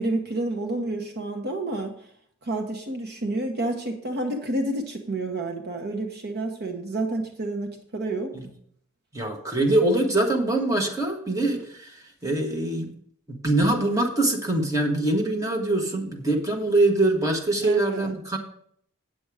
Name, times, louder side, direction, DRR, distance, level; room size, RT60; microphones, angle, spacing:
voice 1, 0.0-1.9 2.4-8.3 17.6-18.1, right 2 dB, 50° right, 4 dB, 1.1 m, -29 dB
voice 2, 9.1-11.9 12.2-12.9 13.3-18.4, right 2 dB, 15° right, 1 dB, 1.5 m, -23 dB
8.9 x 7.7 x 4.9 m, 0.64 s
head